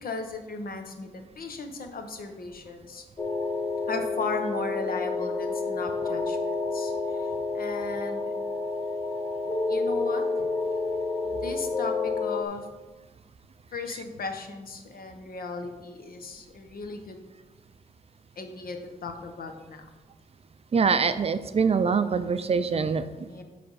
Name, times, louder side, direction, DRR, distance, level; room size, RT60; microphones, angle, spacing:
voice 1, 0.0-3.0 3.9-7.3 7.5-8.3 9.7-10.5 11.3-12.7 13.7-17.2 18.4-19.8 23.3-23.4, left 4 dB, 75° left, 5 dB, 0.9 m, -36 dB
sound 1, 3.2-12.4, left 3 dB, 25° left, 0.6 m, -29 dB
voice 2, 20.7-23.3, right 5 dB, 40° right, 11 dB, 0.4 m, -24 dB
8.8 x 3.4 x 5.5 m, 1.2 s
wide cardioid pair, 150°, 15 cm